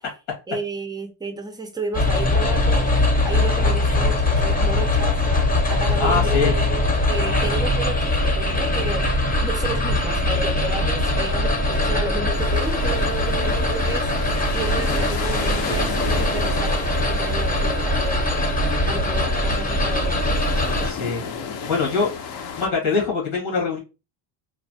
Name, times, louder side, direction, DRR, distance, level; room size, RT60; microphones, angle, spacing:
voice 1, 0.5-2.8 3.2-6.8 7.1-9.1 9.4-18.3 18.9-20.2, right 3 dB, 10° right, 0.3 m, -32 dB
sound 1, 1.9-20.9, left 2 dB, 20° left, 0.7 m, -21 dB
voice 2, 6.0-6.5 20.8-21.2 21.7-22.1 22.6-23.8, left 4 dB, 85° left, 1.5 m, -23 dB
sound 2, 12.3-22.7, left 5 dB, 55° left, 0.6 m, -33 dB
3.1 x 2.1 x 2.6 m
cardioid pair, 120°, 46 cm